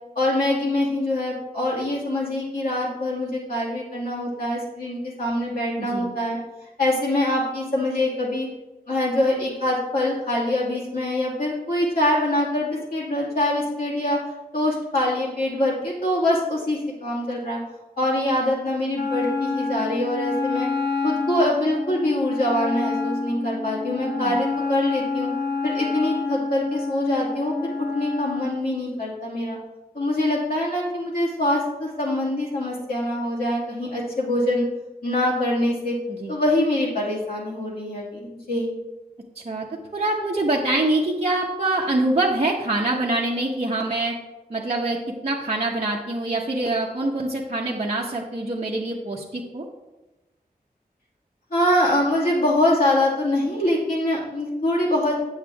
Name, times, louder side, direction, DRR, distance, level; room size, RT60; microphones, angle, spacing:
voice 1, 0.1-6.4 6.8-8.5 8.9-14.2 14.5-17.6 18.0-20.7 21.0-25.3 25.6-29.6 29.9-34.7 35.0-36.0 36.3-38.7 51.5-55.2, left 1 dB, 65° left, -7 dB, 2.6 m, -24 dB
voice 2, 5.8-6.1 24.0-24.4 36.1-36.4 39.4-39.7 39.9-44.2 44.5-49.6, right 2 dB, 40° right, -3 dB, 1.0 m, -25 dB
Wind instrument woodwind instrument, 18.9-28.5, left 4 dB, 85° left, 1.0 m, -28 dB
8.2 x 7.3 x 3.5 m, 1.1 s
wide cardioid pair, 60°, 17 cm